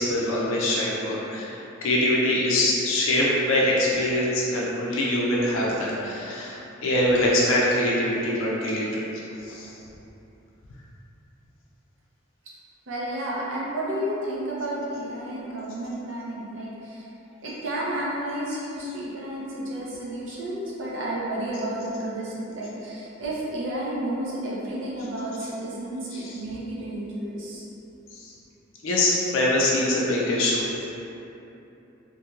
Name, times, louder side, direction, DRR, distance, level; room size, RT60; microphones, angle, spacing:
voice 1, 0.0-9.0 9.4-9.7 26.1-26.3 28.1-28.3 28.8-30.7, left 1 dB, 75° left, -4 dB, 0.4 m, -24 dB
voice 2, 12.9-17.1 17.4-27.6, right 1 dB, 65° right, -6 dB, 0.6 m, -31 dB
2.8 x 2.6 x 2.4 m, 2.9 s
head